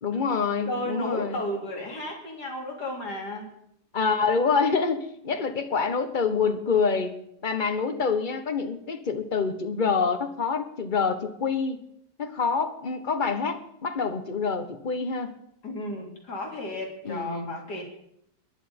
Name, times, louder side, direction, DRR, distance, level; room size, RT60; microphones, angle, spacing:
voice 1, 0.0-1.4 3.9-7.1 7.4-11.8 12.2-15.3 17.0-17.6, left 5 dB, 30° left, 8 dB, 1.2 m, -26 dB
voice 2, 0.7-3.5 15.6-17.8, left 1 dB, 65° left, 0 dB, 3.8 m, -33 dB
20.5 x 10.5 x 5.2 m, 0.73 s
omnidirectional pair, 1.9 m